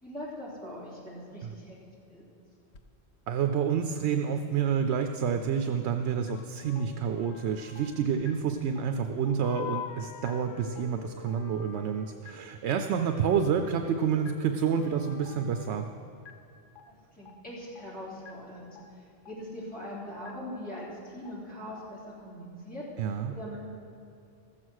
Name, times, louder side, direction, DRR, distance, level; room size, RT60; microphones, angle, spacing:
voice 1, 0.0-1.8 2.1-2.2 16.9-18.7 19.0-22.8 23.3-23.6, equal, 5° left, -8 dB, 3.4 m, -41 dB
sound 1, 2.7-2.8 6.3-9.1 9.4-12.2 12.9-15.9, left 5 dB, 75° left, 1.0 m, -45 dB
voice 2, 3.3-15.9 23.0-23.3, right 7 dB, 75° right, 7 dB, 0.9 m, -29 dB
sound 2, 6.3-6.4 6.8-6.9 7.3-7.4 7.8-7.9 8.2-8.3 8.8-8.9 9.3-9.4 9.8-9.9 10.2-10.3 10.8-10.9 11.3-11.4 11.8-11.9 12.2-12.3 12.8-12.9 13.3-13.4 13.8-13.9 14.2-14.3 14.8-14.9 15.3-15.4 15.8-15.9 16.2-16.3 16.8-16.9 17.3-17.4 17.8-17.9 18.2-18.3 18.8-18.9 19.3-19.4 19.8-19.9 20.2-20.3 20.8-20.9 21.3-21.4 21.8-21.9, left 11 dB, 50° left, 1.0 m, -48 dB
13.5 x 7.7 x 6.3 m, 2.5 s
omnidirectional pair, 1.1 m